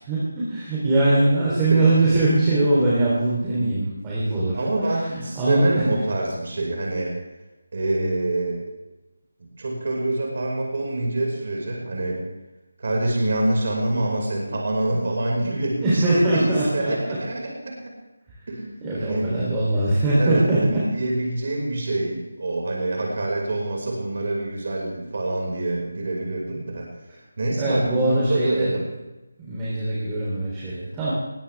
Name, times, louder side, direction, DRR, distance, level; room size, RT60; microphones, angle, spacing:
voice 1, 0.0-4.6 5.3-5.8 15.7-17.2 18.8-20.8 27.6-28.7 29.4-31.1, right 2 dB, 15° right, -8 dB, 3.4 m, -21 dB
voice 2, 4.5-7.1 7.7-8.6 9.4-12.2 12.8-17.7 18.5-18.7 19.0-19.3 20.2-26.9 27.4-28.9, right 2 dB, 55° right, -1 dB, 5.3 m, -26 dB
20.0 x 17.0 x 3.5 m, 1.0 s
figure-of-eight pair, 165°, 0 cm